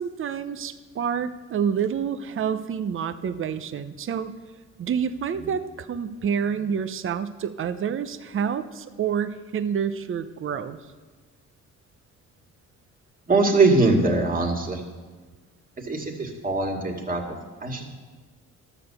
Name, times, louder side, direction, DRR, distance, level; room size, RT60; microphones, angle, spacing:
voice 1, 0.0-4.3 4.8-10.8, right 7 dB, 45° right, 11 dB, 0.7 m, -28 dB
voice 2, 13.3-14.8 15.8-17.9, right 3 dB, 30° right, 2 dB, 2.0 m, -22 dB
12.5 x 7.0 x 6.8 m, 1.4 s
cardioid pair, 90°, 30 cm